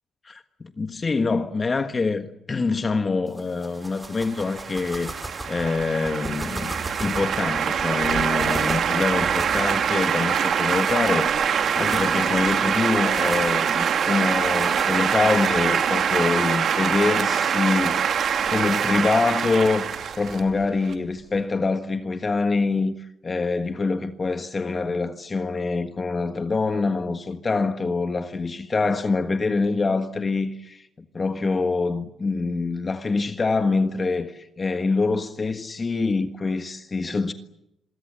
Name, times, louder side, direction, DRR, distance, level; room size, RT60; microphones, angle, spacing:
voice 1, 0.2-5.1 5.5-11.3 11.8-18.1 18.5-19.9 20.2-30.9 31.1-37.3, left 3 dB, 30° left, 1.5 m, -25 dB
sound 1, 3.3-15.2, right 1 dB, 10° right, 5.4 m, -39 dB
sound 2, 4.3-20.9, right 7 dB, 60° right, 2.5 m, -24 dB
27.5 x 23.0 x 7.8 m
cardioid pair, 90°, 0 cm